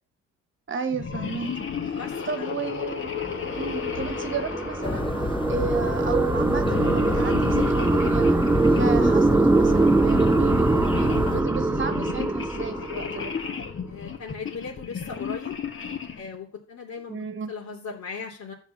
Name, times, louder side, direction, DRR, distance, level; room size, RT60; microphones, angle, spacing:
voice 1, 0.7-1.5 1.9-2.0 2.2-3.1 3.4-5.1 5.5-8.4 8.7-13.3 17.1-17.5, right 5 dB, 40° right, 9 dB, 1.4 m, -33 dB
sound 1, 0.9-5.7 6.6-8.9 9.5-16.4, left 6 dB, 45° left, 1.9 m, -34 dB
voice 2, 1.9-2.5 13.9-15.5 16.1-18.5, left 5 dB, 65° left, -3 dB, 3.2 m, -38 dB
sound 2, 2.9-13.5, right 3 dB, 10° right, 0.5 m, -23 dB
sound 3, 4.8-11.4, left 4 dB, 15° left, 0.8 m, -30 dB
12.0 x 7.4 x 7.3 m, 0.44 s
cardioid pair, 90°, 30 cm